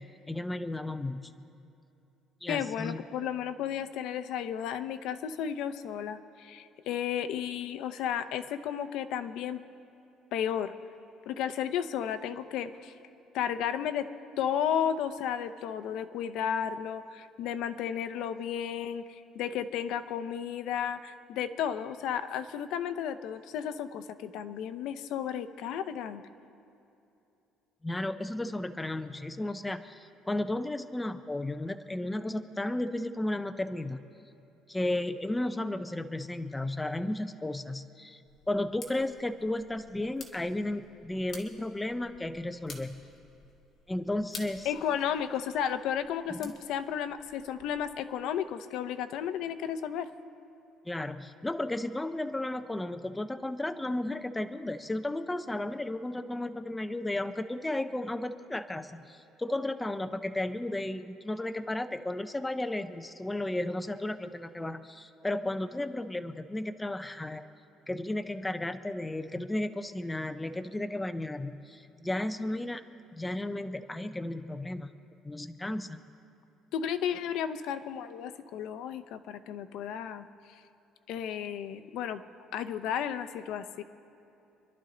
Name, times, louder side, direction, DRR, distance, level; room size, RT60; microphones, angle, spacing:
voice 1, 0.0-1.5 2.4-3.0 27.8-34.0 34.7-38.2 38.5-43.0 43.9-44.7 46.3-46.5 50.9-67.5 67.9-72.8 73.1-74.9 75.2-76.0, left 1 dB, 5° left, 9 dB, 0.4 m, -34 dB
voice 2, 2.5-9.6 10.3-10.7 11.3-12.9 13.3-14.1 14.4-26.2 44.6-50.1 76.7-80.6 81.1-82.2 82.5-83.8, left 9 dB, 65° left, 10 dB, 0.7 m, -33 dB
sound 1, 38.2-48.0, left 4 dB, 35° left, 1.7 m, -51 dB
27.0 x 11.5 x 3.8 m, 2.8 s
cardioid pair, 170°, 0 cm